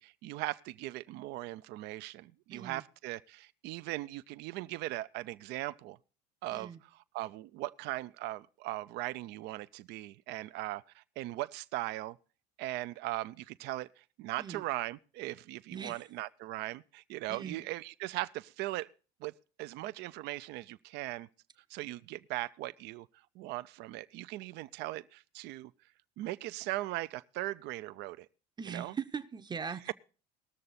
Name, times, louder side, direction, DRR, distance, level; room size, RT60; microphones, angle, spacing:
voice 1, 0.0-6.0 6.4-6.7 7.1-12.2 12.6-18.9 19.2-19.3 19.6-21.3 21.7-23.1 23.4-25.7 26.2-28.3 28.7-28.9, right 17 dB, 60° right, 0.5 m, -39 dB
voice 2, 2.5-2.8 6.5-6.8 14.4-14.6 15.7-16.0 17.3-17.6 28.6-29.9, right 6 dB, 20° right, 0.7 m, -40 dB
19.5 x 6.7 x 4.1 m
supercardioid pair, 85°, 20 cm